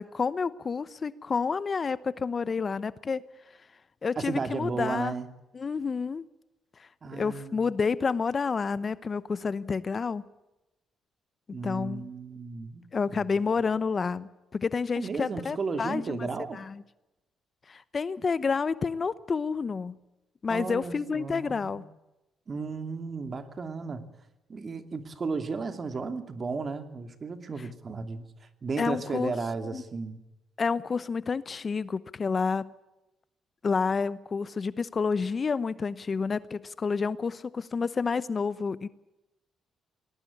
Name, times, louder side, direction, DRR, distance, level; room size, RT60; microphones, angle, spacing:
voice 1, 0.0-3.2 4.0-5.1 5.5-6.2 6.8-10.2 11.5-12.0 12.9-16.8 17.7-19.9 20.4-21.8 28.8-29.3 29.6-29.8 30.6-32.7 33.6-38.9, left 5 dB, 40° left, 17 dB, 0.9 m, -29 dB
voice 2, 4.2-5.3 7.0-7.7 11.5-12.9 13.1-13.2 15.0-16.6 20.5-21.8 22.5-24.0 24.5-28.3 28.6-30.2, right 4 dB, 40° right, 9 dB, 2.7 m, -34 dB
21.0 x 19.0 x 8.6 m, 0.96 s
cardioid pair, 90°, 0 cm